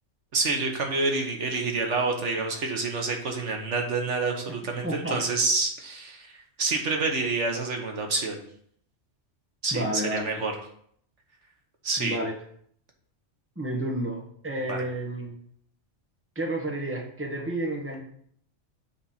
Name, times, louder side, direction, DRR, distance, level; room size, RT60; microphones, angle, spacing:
voice 1, 0.3-8.4 9.6-10.5 11.8-12.2 14.7-14.8, right 3 dB, 75° right, 3 dB, 1.4 m, -28 dB
voice 2, 4.8-5.2 9.7-10.4 12.0-12.3 13.6-15.4 16.3-18.0, right 1 dB, 10° right, 0 dB, 1.3 m, -31 dB
7.2 x 4.1 x 5.7 m, 0.64 s
omnidirectional pair, 1.2 m